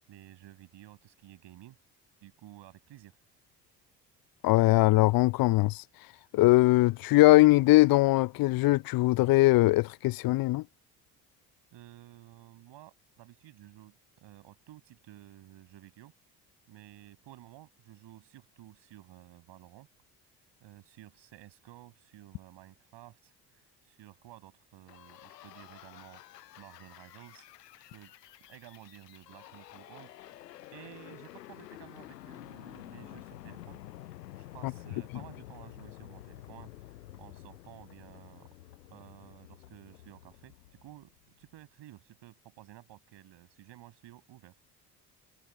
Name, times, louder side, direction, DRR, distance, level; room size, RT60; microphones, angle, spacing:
voice 1, 0.1-1.8 2.2-3.2 11.7-16.1 16.7-19.9 20.6-26.2 26.6-27.5 27.9-28.1 28.5-30.2 30.7-33.8 34.4-36.9 37.2-38.5 38.9-40.5 40.8-41.1 41.4-44.6, right 14 dB, 60° right, 6.9 m, -53 dB
voice 2, 4.4-5.8 6.3-10.6 34.6-34.7, left 19 dB, 45° left, 0.6 m, -21 dB
sound 1, 24.9-41.5, left 14 dB, 80° left, 6.3 m, -50 dB
figure-of-eight pair, 50°, 49 cm